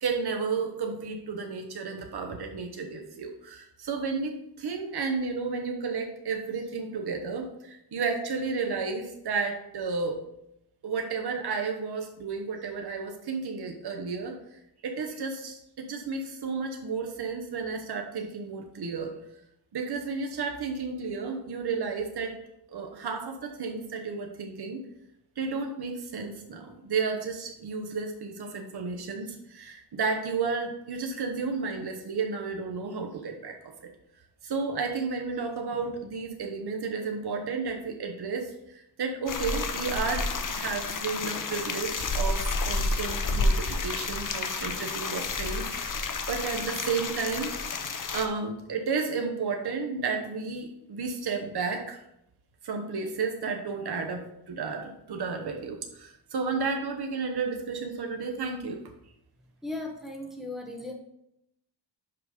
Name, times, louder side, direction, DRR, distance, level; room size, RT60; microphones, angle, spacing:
voice 1, 0.0-10.2 10.8-19.1 19.7-22.4 22.7-24.8 25.4-33.9 34.4-52.0 52.6-58.8, right 4 dB, 65° right, 3 dB, 1.0 m, -32 dB
sound 1, 39.3-48.3, left 3 dB, 45° left, 0.8 m, -30 dB
voice 2, 59.6-60.9, left 2 dB, ahead, 0 dB, 1.2 m, -37 dB
5.8 x 5.3 x 5.0 m, 0.79 s
wide cardioid pair, 130°, 43 cm